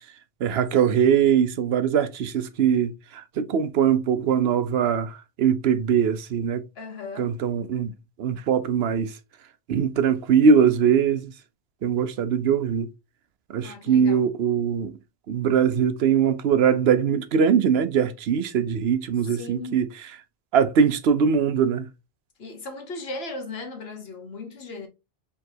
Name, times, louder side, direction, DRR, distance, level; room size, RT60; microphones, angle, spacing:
voice 1, 0.4-6.6 7.2-7.9 8.2-9.1 9.7-11.3 11.8-12.9 13.5-14.9 15.3-19.9 20.5-21.9, right 7 dB, 80° right, 0.9 m, -21 dB
voice 2, 6.7-7.4 13.6-14.2 19.2-19.8 22.4-24.9, left 3 dB, 75° left, 1.4 m, -37 dB
4.6 x 3.7 x 2.7 m
omnidirectional pair, 1.0 m